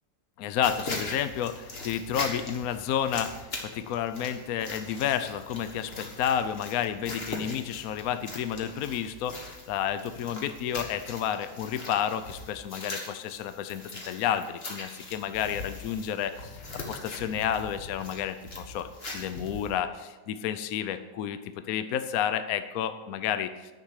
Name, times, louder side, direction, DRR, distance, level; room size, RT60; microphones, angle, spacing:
voice 1, 0.4-16.6 16.9-18.9 19.1-23.5, left 9 dB, 70° left, 10 dB, 0.9 m, -31 dB
sound 1, 0.6-19.8, left 2 dB, 35° left, 1.6 m, -41 dB
10.0 x 6.6 x 6.4 m, 1.2 s
omnidirectional pair, 1.9 m